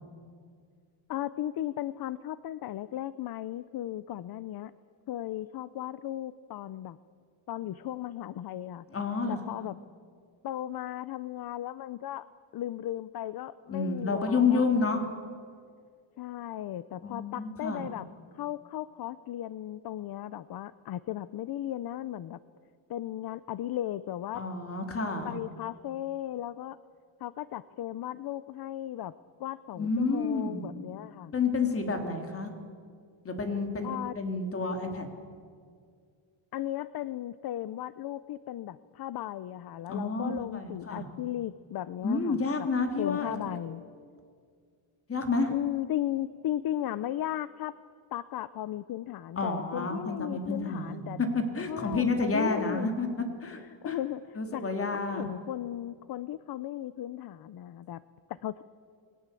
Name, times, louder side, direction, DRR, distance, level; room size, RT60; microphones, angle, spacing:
voice 1, 1.1-4.7 5.1-7.0 7.5-8.9 9.3-9.8 10.4-12.3 12.5-15.0 16.2-18.1 18.3-22.4 22.9-24.4 25.2-26.8 27.2-29.1 29.4-31.3 33.8-34.1 36.5-42.4 43.0-43.8 45.5-47.7 48.1-51.2 51.7-52.9 53.4-54.6 55.1-58.0 58.3-58.6, left 12 dB, 50° left, 15 dB, 0.7 m, -36 dB
voice 2, 8.9-9.7 13.7-15.0 17.0-17.8 24.3-25.4 29.8-30.7 31.3-32.5 33.2-35.1 39.9-41.0 42.0-43.4 45.1-45.5 49.4-53.1 53.4-53.6 53.8-54.0 54.3-55.3, left 4 dB, 30° left, 4 dB, 3.3 m, -30 dB
29.0 x 21.5 x 8.4 m, 2.1 s
cardioid pair, 170°, 48 cm